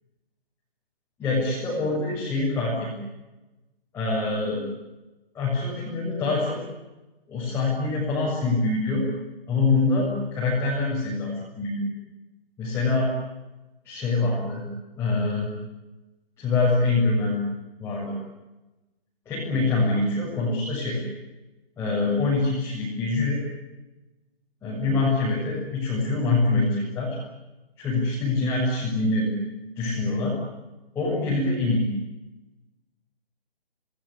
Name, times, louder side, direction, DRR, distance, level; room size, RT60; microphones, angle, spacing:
voice 1, 1.2-2.9 3.9-4.6 5.3-6.6 7.3-9.0 9.5-11.8 12.6-13.1 13.9-14.6 15.0-15.5 16.4-17.4 17.8-18.1 19.3-21.0 21.8-23.4 24.6-27.2 27.8-29.3 29.8-30.4 30.9-31.9, left 3 dB, 10° left, -6 dB, 7.1 m, -24 dB
29.5 x 20.0 x 9.8 m, 1.1 s
hypercardioid pair, 160°, 30 cm